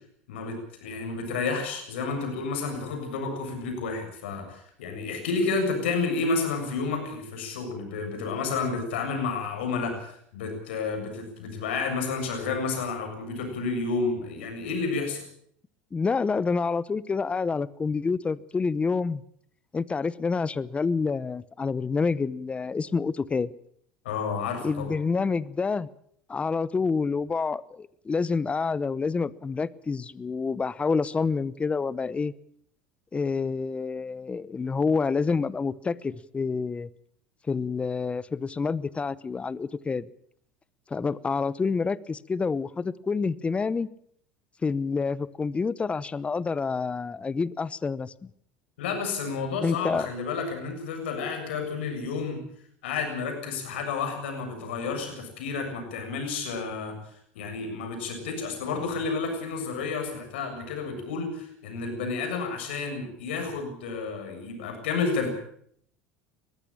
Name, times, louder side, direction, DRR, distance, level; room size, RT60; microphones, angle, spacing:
voice 1, 0.3-15.2 24.0-24.9 48.8-52.4 52.8-56.9 57.4-65.3, left 4 dB, 85° left, 4 dB, 7.3 m, -30 dB
voice 2, 15.9-19.2 19.7-23.5 24.6-25.9 26.3-32.3 33.1-36.9 37.5-40.1 40.9-43.9 44.6-48.1 49.6-50.1, left 4 dB, 20° left, 19 dB, 0.9 m, -28 dB
21.0 x 15.0 x 8.7 m, 0.66 s
supercardioid pair, 95°, 6 cm